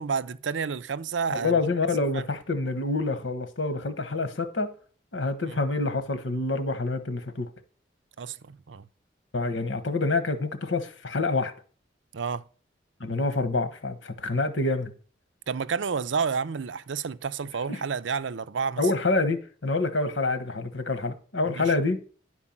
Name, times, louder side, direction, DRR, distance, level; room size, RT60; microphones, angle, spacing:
voice 1, 0.0-1.6 2.1-2.2 5.5-5.6 8.2-8.8 12.1-12.4 15.5-18.8 21.5-21.7, right 5 dB, 85° right, 0.5 m, -30 dB
voice 2, 1.3-4.7 5.1-7.5 9.3-11.5 13.0-14.9 17.7-17.8 18.8-22.0, left 3 dB, 90° left, 1.4 m, -27 dB
11.0 x 4.6 x 7.3 m
head